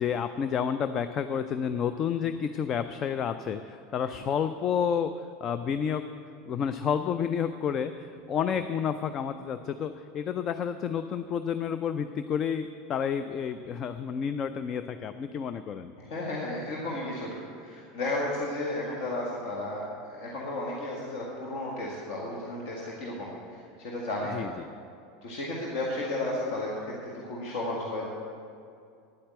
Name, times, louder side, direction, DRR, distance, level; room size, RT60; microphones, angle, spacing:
voice 1, 0.0-6.1 6.5-15.9 24.3-24.7, left 7 dB, 35° left, 10 dB, 0.4 m, -30 dB
voice 2, 16.0-24.5 25.2-28.1, left 1 dB, 50° left, -4 dB, 1.7 m, -33 dB
9.8 x 8.6 x 7.8 m, 2.4 s
figure-of-eight pair, 75°, 0 cm